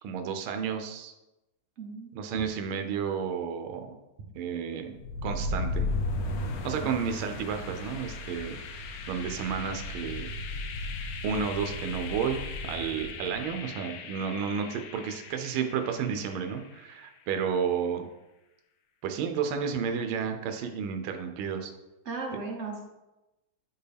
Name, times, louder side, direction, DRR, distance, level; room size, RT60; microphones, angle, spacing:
voice 1, 0.0-1.1 2.1-3.9 4.3-5.9 6.6-8.6 9.1-10.3 11.2-18.0 19.0-21.7, right 7 dB, 80° right, 6 dB, 1.4 m, -32 dB
voice 2, 1.8-2.4 6.8-6.9 22.1-22.8, right 4 dB, 55° right, 1 dB, 0.7 m, -37 dB
sound 1, 4.9-16.8, left 2 dB, 70° left, 0.8 m, -36 dB
8.2 x 4.5 x 3.4 m, 0.99 s
omnidirectional pair, 2.3 m